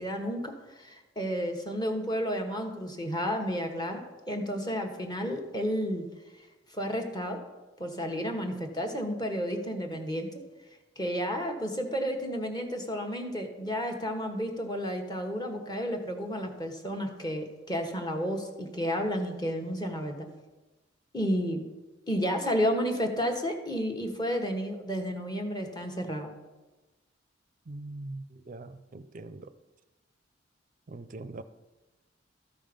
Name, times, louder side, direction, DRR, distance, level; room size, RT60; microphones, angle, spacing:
voice 1, 0.0-4.0 4.3-6.1 6.7-7.4 7.8-10.3 11.0-20.3 21.1-21.6 22.1-26.3, equal, 25° left, 4 dB, 1.1 m, -31 dB
voice 2, 27.7-29.5 30.9-31.4, right 2 dB, 45° right, 13 dB, 0.5 m, -42 dB
13.0 x 5.5 x 5.2 m, 1.1 s
head